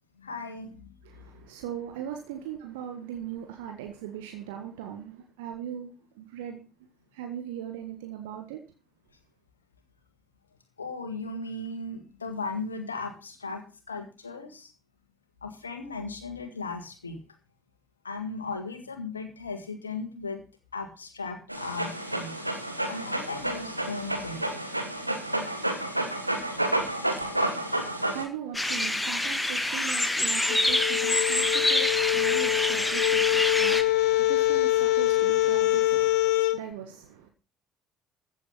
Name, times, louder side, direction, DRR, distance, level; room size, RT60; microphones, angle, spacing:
voice 1, 0.2-0.9 10.8-14.7 15.4-17.2 18.0-20.4 20.7-22.3 22.9-24.7 26.3-26.7, left 3 dB, 80° left, 1.7 m, -37 dB
voice 2, 1.0-5.9 6.1-6.6 7.1-8.6 26.6-37.3, right 9 dB, 70° right, 1.6 m, -39 dB
Dog, 21.5-28.2, right 1 dB, 90° right, 1.4 m, -30 dB
sound 1, 28.5-33.8, left 1 dB, 10° left, 1.8 m, -26 dB
sound 2, 30.5-36.6, left 16 dB, 65° left, 1.1 m, -24 dB
14.5 x 7.5 x 5.9 m
figure-of-eight pair, 50°, 0 cm